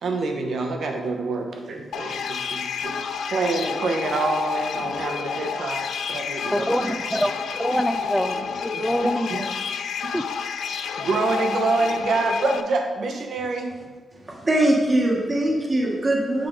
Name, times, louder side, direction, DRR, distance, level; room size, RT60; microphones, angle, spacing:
voice 1, 0.0-7.2 8.7-9.4 10.7-13.7, right 3 dB, 70° right, 3 dB, 1.0 m, -27 dB
sound 1, 1.9-12.6, left 6 dB, 80° left, 0.3 m, -29 dB
voice 2, 6.5-7.3 7.6-9.5 10.1-10.2, equal, ahead, 10 dB, 0.3 m, -25 dB
voice 3, 14.1-16.5, right 1 dB, 30° right, -2 dB, 1.1 m, -22 dB
7.5 x 4.7 x 3.7 m, 1.4 s
cardioid pair, 95°, 0 cm